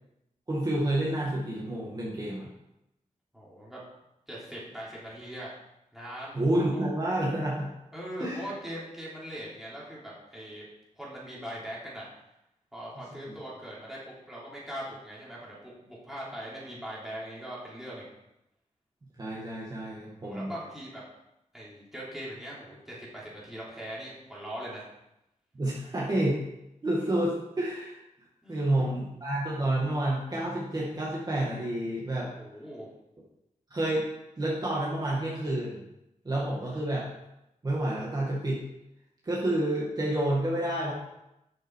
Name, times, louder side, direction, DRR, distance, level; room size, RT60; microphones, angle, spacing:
voice 1, 0.5-2.5 6.3-7.7 8.2-8.5 13.3-13.4 19.2-20.5 25.5-26.4 26.8-28.0 28.5-32.3 33.7-34.1 34.4-35.8 36.2-37.1 37.6-38.6 39.2-40.9, right 1 dB, 30° right, -5 dB, 2.0 m, -29 dB
voice 2, 3.3-3.8 4.3-5.5 5.9-6.4 7.9-10.6 11.0-12.1 12.7-18.0 20.2-21.0 21.5-24.9 28.4-28.9 32.3-32.9 36.6-36.8, equal, ahead, -7 dB, 3.3 m, -41 dB
12.0 x 6.5 x 4.7 m, 0.87 s
wide cardioid pair, 175°, 13 cm